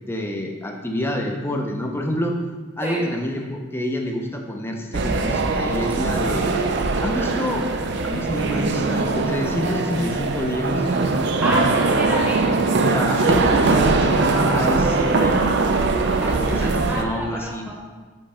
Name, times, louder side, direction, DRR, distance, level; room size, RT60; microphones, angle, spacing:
voice 1, 0.1-2.3 2.8-6.5 7.0-7.7 8.0-10.9 12.9-15.4 16.5-17.8, left 1 dB, 10° left, 2 dB, 0.6 m, -27 dB
sound 1, 4.9-17.0, right 3 dB, 55° right, 0.4 m, -21 dB
voice 2, 11.4-12.5 16.2-17.8, right 1 dB, 10° right, -2 dB, 0.9 m, -29 dB
5.4 x 5.2 x 4.3 m, 1.4 s
head